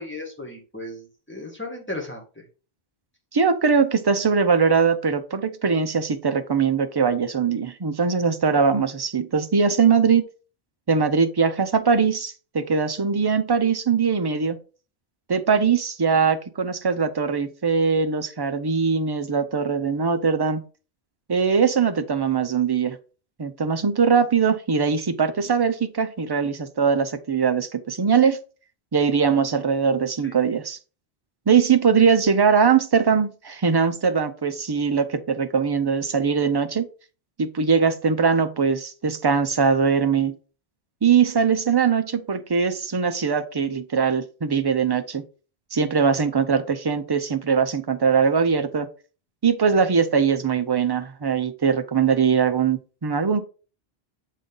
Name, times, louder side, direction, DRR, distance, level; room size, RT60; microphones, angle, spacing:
voice 1, 0.0-2.4 30.2-30.3, left 2 dB, 10° left, 1.6 m, -35 dB
voice 2, 3.3-10.2 10.9-14.6 15.3-20.6 21.3-23.0 23.4-28.4 28.9-30.8 31.5-36.9 37.4-40.4 41.0-45.2 45.7-48.9 49.4-53.4, right 6 dB, 35° right, 0.4 m, -21 dB
7.3 x 3.9 x 3.8 m
omnidirectional pair, 1.1 m